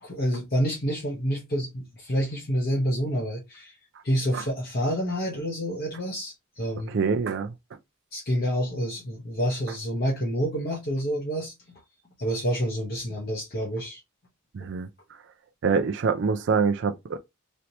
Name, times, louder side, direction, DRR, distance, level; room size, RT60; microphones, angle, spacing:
voice 1, 0.0-3.7 4.0-6.9 8.1-11.5 12.2-14.0 14.6-14.7, equal, 50° left, 1.0 m, -28 dB
voice 2, 6.9-7.5 14.5-14.9 15.6-17.2, right 5 dB, 60° right, 0.4 m, -25 dB
3.2 x 2.8 x 2.7 m
head